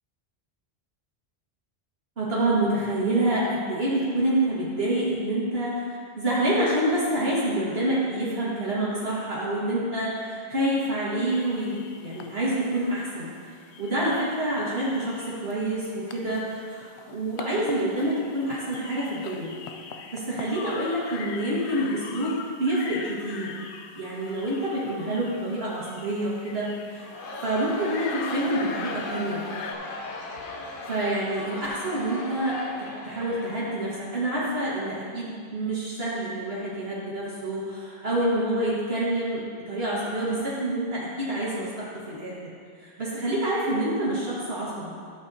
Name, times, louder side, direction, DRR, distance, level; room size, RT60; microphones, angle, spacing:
voice 1, 2.2-19.5 20.1-23.6 24.0-27.1 27.4-29.4 30.9-44.9, right 1 dB, 70° right, -8 dB, 1.9 m, -27 dB
sound 1, 11.3-29.7, left 6 dB, 90° left, 0.9 m, -42 dB
Crowd, 27.0-34.2, left 2 dB, 55° left, 0.9 m, -37 dB
11.5 x 7.9 x 2.7 m, 2.1 s
omnidirectional pair, 1.1 m